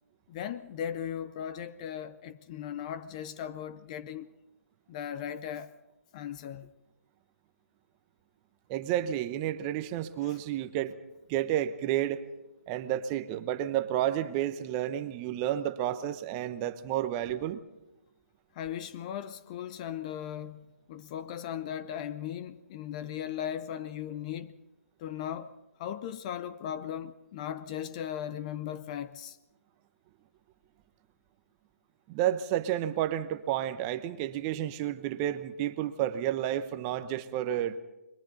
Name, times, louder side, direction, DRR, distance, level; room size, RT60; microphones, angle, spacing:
voice 1, 0.3-4.3 4.9-5.7 6.1-6.8 10.2-10.4 18.5-24.6 25.0-29.4, left 9 dB, 30° left, 0.6 m, -38 dB
voice 2, 8.7-10.9 11.3-12.2 12.7-17.6 32.1-37.8, right 12 dB, 20° right, 0.9 m, -31 dB
29.5 x 22.5 x 4.0 m
hypercardioid pair, 155°, 8 cm